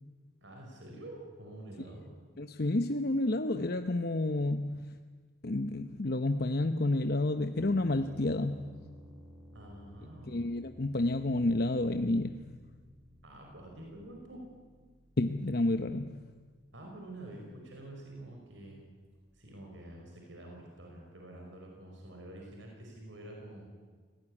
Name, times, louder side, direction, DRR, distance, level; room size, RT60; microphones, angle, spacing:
voice 1, 0.4-2.1 9.5-10.3 13.2-14.4 16.7-18.8 19.3-23.7, right 1 dB, 70° right, 0 dB, 5.5 m, -47 dB
voice 2, 2.4-4.9 5.4-8.7 10.3-12.5 15.2-16.2, left 2 dB, 50° left, 8 dB, 0.9 m, -30 dB
sound 1, 7.6-19.2, equal, ahead, 4.9 m, -57 dB
28.5 x 18.0 x 9.9 m, 1.5 s
head